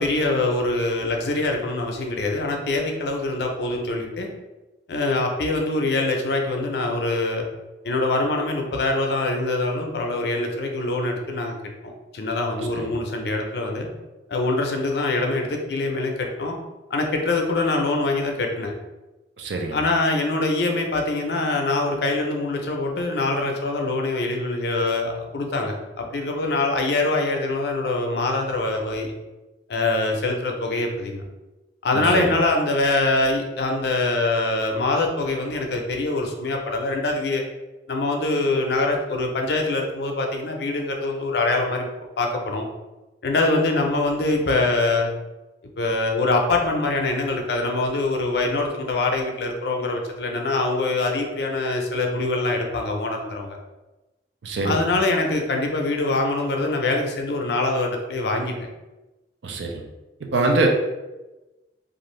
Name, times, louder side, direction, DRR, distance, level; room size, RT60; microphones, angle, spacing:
voice 1, 0.0-4.3 4.9-7.5 7.8-11.6 11.8-13.9 14.3-16.6 16.9-18.7 19.7-29.1 29.7-31.2 31.8-37.4 37.9-41.9 42.2-42.7 43.2-45.1 45.8-53.6 54.6-58.5, left 2 dB, 65° left, 2 dB, 0.5 m, -24 dB
voice 2, 19.4-19.8 31.9-32.4 54.4-54.8 59.4-59.8 60.3-60.7, right 2 dB, 80° right, 2 dB, 0.5 m, -24 dB
2.5 x 2.4 x 3.1 m, 1.1 s
head